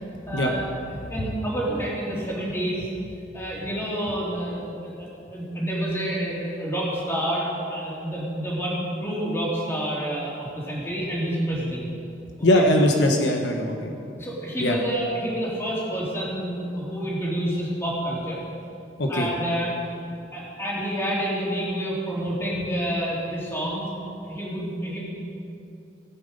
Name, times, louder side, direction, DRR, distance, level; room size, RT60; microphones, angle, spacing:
voice 1, 0.3-0.8 1.1-2.9 3.3-11.8 12.5-12.6 14.2-18.4 19.1-19.7 20.3-23.9 24.2-25.0, right 1 dB, 15° left, -6 dB, 3.2 m, -28 dB
voice 2, 12.4-13.9 14.6-14.8 19.0-19.3, left 1 dB, 75° left, 2 dB, 1.1 m, -21 dB
17.5 x 8.9 x 5.3 m, 2.7 s
head